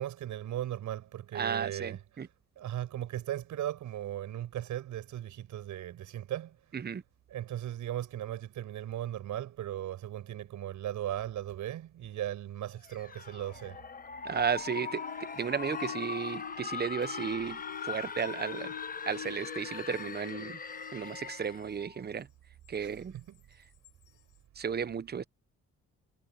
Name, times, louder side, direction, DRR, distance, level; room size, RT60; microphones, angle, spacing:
voice 1, 0.0-2.2 2.6-6.6 7.3-13.8 22.7-23.4, right 12 dB, 75° right, 6.0 m, -37 dB
voice 2, 1.3-2.3 6.8-7.0 14.2-18.7 19.1-20.6 20.9-22.3 22.7-23.1 24.6-25.2, right 7 dB, 35° right, 0.9 m, -34 dB
sound 1, 12.8-21.7, left 5 dB, 30° left, 1.1 m, -40 dB
sound 2, 14.4-22.0 22.7-22.8 23.8-23.9, left 12 dB, 80° left, 2.5 m, -48 dB
cardioid pair, 90°, 30 cm